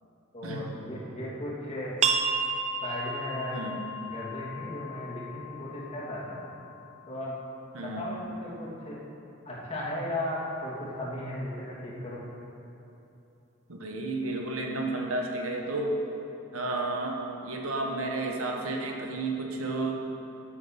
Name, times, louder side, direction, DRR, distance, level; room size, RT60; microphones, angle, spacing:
voice 1, 0.3-2.0 2.8-3.6 4.1-6.4 7.1-7.4 7.8-9.0 9.4-12.3, left 1 dB, 30° left, -6 dB, 2.8 m, -36 dB
sound 1, 2.0-7.4, right 4 dB, 35° right, 0.5 m, -33 dB
voice 2, 7.7-8.1 13.7-15.9 16.5-20.0, right 2 dB, 75° right, 1 dB, 1.4 m, -32 dB
13.5 x 7.7 x 5.9 m, 2.9 s
head